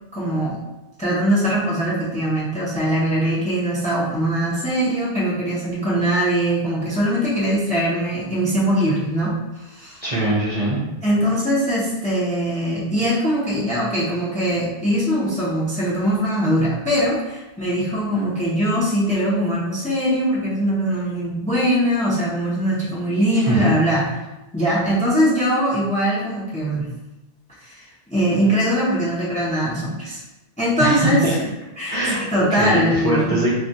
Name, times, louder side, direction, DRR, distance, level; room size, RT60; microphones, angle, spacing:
voice 1, 0.1-0.6 1.0-10.0 11.0-24.0 24.5-26.9 27.6-30.2 30.6-31.4 31.8-33.3, equal, 10° left, -7 dB, 0.5 m, -21 dB
voice 2, 10.0-10.8 23.5-23.7 30.8-31.3 31.9-32.2 32.5-33.5, right 1 dB, 40° right, -8 dB, 0.5 m, -21 dB
2.3 x 2.3 x 3.9 m, 1.0 s
omnidirectional pair, 1.2 m